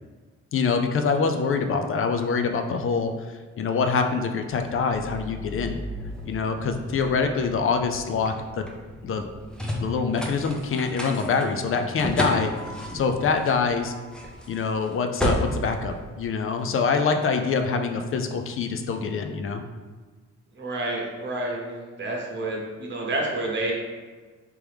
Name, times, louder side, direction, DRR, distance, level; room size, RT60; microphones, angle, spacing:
voice 1, 0.5-5.8 6.2-8.6 9.0-9.2 9.8-12.5 12.9-13.9 14.5-19.6, left 5 dB, 45° left, 6 dB, 0.4 m, -25 dB
sound 1, 4.5-16.8, equal, 5° left, 0.6 m, -34 dB
voice 2, 20.6-23.7, right 2 dB, 35° right, -1 dB, 1.0 m, -29 dB
3.5 x 3.0 x 3.4 m, 1.4 s
cardioid pair, 90°, 30 cm